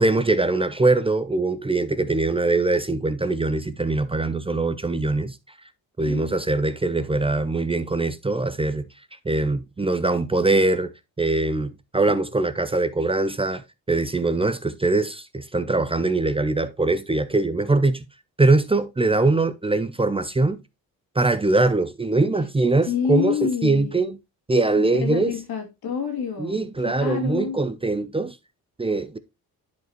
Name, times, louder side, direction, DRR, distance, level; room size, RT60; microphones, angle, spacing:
voice 1, 0.0-5.4 6.0-8.9 9.2-10.9 11.2-13.6 13.9-18.0 18.4-20.6 21.2-24.1 24.5-25.3 26.4-28.4 28.8-29.2, right 2 dB, 15° right, 0.5 m, -22 dB
voice 2, 6.0-6.4 22.8-24.1 24.8-26.7 27.0-27.6, left 7 dB, 75° left, 2.9 m, -28 dB
10.5 x 4.8 x 3.0 m
cardioid pair, 105°, 37 cm